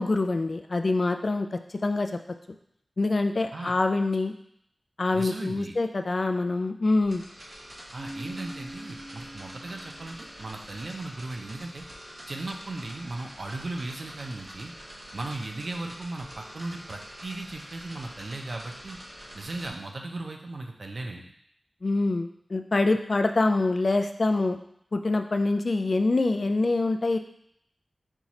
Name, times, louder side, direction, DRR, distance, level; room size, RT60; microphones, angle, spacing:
voice 1, 0.0-1.5 1.8-2.1 3.0-4.3 5.0-7.2 21.8-24.6 24.9-27.2, left 2 dB, 60° left, 6 dB, 0.3 m, -25 dB
voice 2, 5.1-5.7 7.9-11.8 12.3-14.7 15.1-19.0 19.3-21.3, right 2 dB, 70° right, 2 dB, 0.6 m, -37 dB
sound 1, 7.0-19.7, equal, 50° right, 1.0 m, -45 dB
Keyboard (musical), 8.0-10.6, right 1 dB, 5° left, 1.2 m, -44 dB
4.5 x 2.4 x 4.1 m, 0.71 s
wide cardioid pair, 60°, 0 cm